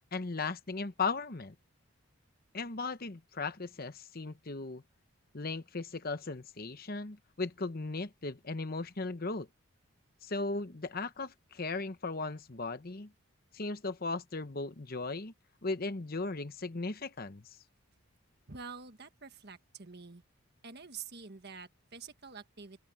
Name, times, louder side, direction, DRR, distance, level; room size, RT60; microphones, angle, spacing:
voice 1, 0.1-1.5 2.5-4.8 5.3-9.5 10.2-13.1 13.5-15.3 15.6-17.6, left 3 dB, 45° left, 0.9 m, -37 dB
voice 2, 18.5-20.2 20.6-22.9, right 5 dB, 50° right, 1.6 m, -47 dB
open air
head